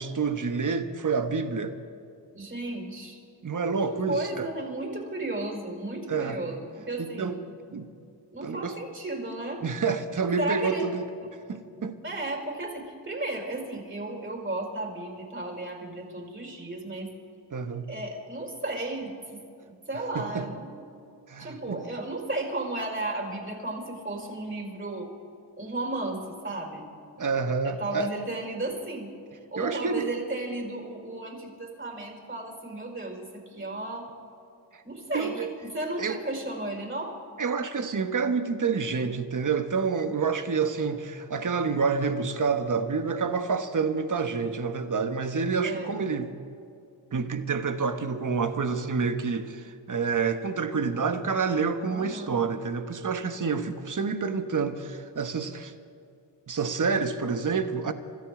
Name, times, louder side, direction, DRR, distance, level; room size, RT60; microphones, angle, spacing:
voice 1, 0.0-1.7 3.4-4.5 6.1-6.4 7.0-7.4 7.7-7.9 8.4-8.8 9.6-11.1 11.5-12.0 17.5-17.9 20.1-20.5 21.3-21.8 27.2-28.1 29.6-30.1 35.1-35.5 36.0-36.2 37.4-46.3 47.1-55.7 56.5-57.9, right 5 dB, 40° right, 9 dB, 1.3 m, -28 dB
voice 2, 2.3-3.2 4.1-7.4 8.3-9.6 10.4-10.9 11.2-11.3 11.8-17.1 17.9-19.4 19.6-20.9 21.4-25.1 25.6-26.9 27.6-29.1 29.5-34.1 34.8-37.2 45.6-46.0 51.9-52.4, right 2 dB, 25° right, 1 dB, 5.0 m, -34 dB
26.0 x 14.0 x 3.8 m, 2.5 s
cardioid pair, 60°, 46 cm